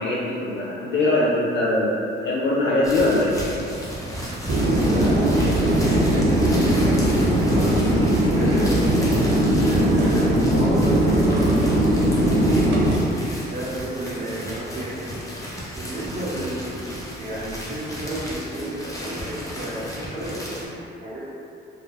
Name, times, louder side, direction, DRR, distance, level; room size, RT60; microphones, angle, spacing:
voice 1, 0.0-3.3, left 2 dB, 65° left, -7 dB, 0.4 m, -22 dB
sound 1, 2.8-20.7, equal, 15° left, 0.6 m, -34 dB
sound 2, 4.5-13.0, right 1 dB, 65° right, 0.5 m, -19 dB
voice 2, 4.6-12.4 13.4-15.1 15.7-21.2, right 1 dB, 40° right, -10 dB, 0.9 m, -32 dB
2.4 x 2.1 x 3.1 m, 2.7 s
cardioid pair, 90°, 20 cm